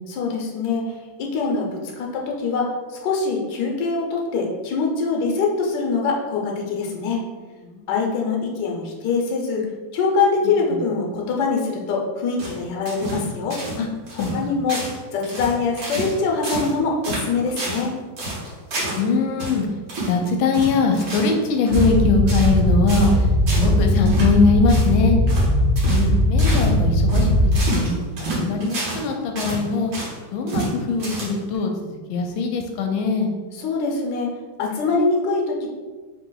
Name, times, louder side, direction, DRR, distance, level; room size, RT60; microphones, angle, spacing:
voice 1, 0.1-0.8 1.2-2.7 3.0-7.2 7.9-9.7 9.9-13.6 14.3-14.8 15.1-17.9 33.5-35.7, left 4 dB, 70° left, 0 dB, 1.4 m, -23 dB
sound 1, 12.4-13.3 13.5-13.8 14.1-14.4 14.7-15.0 15.2-16.2 16.4-16.8 17.0-17.9 18.2-19.0 19.4-19.6 19.9-20.2 20.5-21.4 21.7-22.0 22.3-22.6 22.9-23.2 23.5-23.7 24.1-24.3 24.7-24.9 25.3-25.5 25.8-26.1 26.4-26.7 27.1-29.1 29.4-30.2 30.5-30.7 31.0-31.6, right 2 dB, 80° right, 2.1 m, -29 dB
voice 2, 14.2-14.6 19.0-19.7 20.1-23.3 23.6-25.2 25.9-27.3 27.7-27.9 28.2-29.9 30.3-33.3, left 4 dB, 85° left, 3 dB, 1.4 m, -21 dB
sound 2, 21.7-27.7, left 1 dB, 45° left, 0.9 m, -19 dB
4.1 x 2.9 x 3.8 m, 1.4 s
omnidirectional pair, 2.2 m